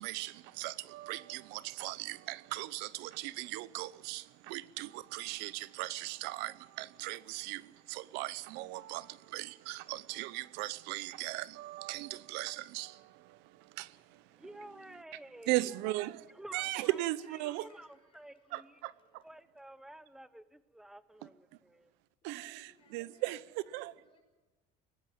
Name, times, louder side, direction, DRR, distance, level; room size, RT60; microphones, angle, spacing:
voice 1, 0.0-14.2 15.5-17.7 18.5-19.2 22.2-23.9, right 18 dB, 80° right, 0.8 m, -38 dB
voice 2, 14.3-15.5 16.3-17.1 17.3-18.8 19.2-21.9, right 1 dB, ahead, 0.8 m, -52 dB
voice 3, 16.7-19.2 22.2-24.2, left 4 dB, 30° left, 5.9 m, -65 dB
21.0 x 17.5 x 7.5 m
cardioid pair, 155°, 17 cm